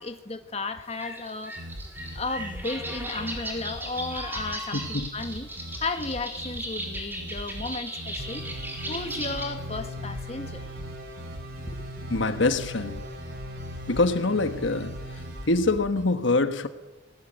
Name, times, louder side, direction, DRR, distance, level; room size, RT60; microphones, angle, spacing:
voice 1, 0.0-1.6 2.1-8.4 8.9-10.7 11.6-11.9, left 3 dB, 30° left, 1.6 m, -34 dB
sound 1, 0.9-9.5, right 1 dB, 10° right, 4.5 m, -36 dB
sound 2, 1.5-16.1, equal, 70° right, 4.3 m, -41 dB
voice 2, 4.7-5.1 12.1-13.0 13.9-16.7, left 2 dB, 70° left, 1.4 m, -25 dB
sound 3, 8.2-15.5, equal, 50° right, 4.1 m, -40 dB
27.0 x 20.0 x 9.1 m
head